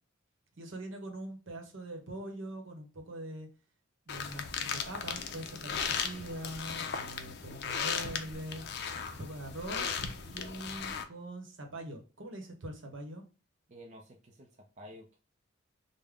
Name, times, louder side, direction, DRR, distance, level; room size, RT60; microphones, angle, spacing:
voice 1, 0.6-3.5 4.1-8.6 9.2-10.0 10.2-13.2, right 1 dB, 70° right, 4 dB, 0.9 m, -43 dB
sound 1, 4.1-11.0, left 6 dB, 55° left, 0.4 m, -37 dB
voice 2, 13.7-15.2, equal, 35° right, 0 dB, 0.4 m, -51 dB
3.5 x 2.1 x 3.5 m, 0.35 s
head